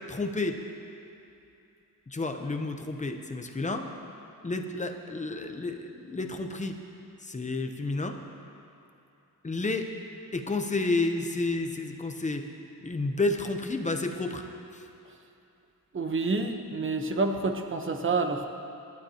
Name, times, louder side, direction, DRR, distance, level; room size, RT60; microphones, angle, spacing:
voice 1, 0.1-0.6 2.1-3.9 4.4-6.8 7.2-8.2 9.4-9.9 10.3-12.5 12.8-14.4 14.7-14.8, left 2 dB, 20° left, 5 dB, 0.8 m, -30 dB
voice 2, 15.9-18.5, right 3 dB, 35° right, 5 dB, 1.0 m, -28 dB
26.0 x 12.0 x 2.9 m, 2.7 s
wide cardioid pair, 160°, 36 cm